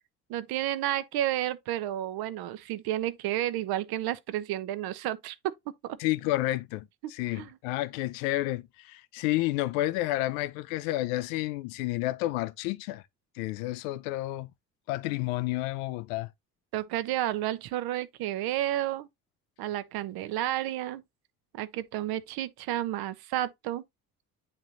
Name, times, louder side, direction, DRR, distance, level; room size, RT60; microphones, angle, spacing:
voice 1, 0.3-5.5 5.8-6.0 7.0-7.5 16.7-19.1 19.6-21.0 21.5-23.8, right 13 dB, 55° right, 0.8 m, -31 dB
voice 2, 6.0-13.0 13.4-14.5 14.9-16.3, left 17 dB, 65° left, 0.6 m, -30 dB
9.7 x 3.7 x 2.8 m
figure-of-eight pair, 45°, 45 cm